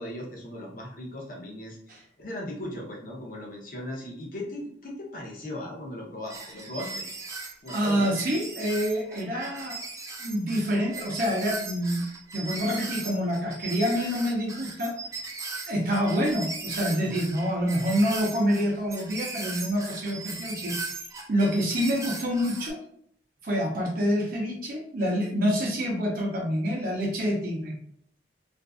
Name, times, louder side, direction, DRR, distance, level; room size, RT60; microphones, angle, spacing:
voice 1, 0.0-7.1 7.6-8.1, left 1 dB, 45° left, -2 dB, 0.7 m, -38 dB
sound 1, 6.3-22.7, right 3 dB, 15° right, 0.3 m, -38 dB
voice 2, 7.7-9.8 10.2-12.0 12.3-15.0 15.7-20.7 21.3-22.8 23.4-27.7, equal, 50° right, -1 dB, 0.7 m, -27 dB
2.5 x 2.3 x 2.3 m, 0.67 s
head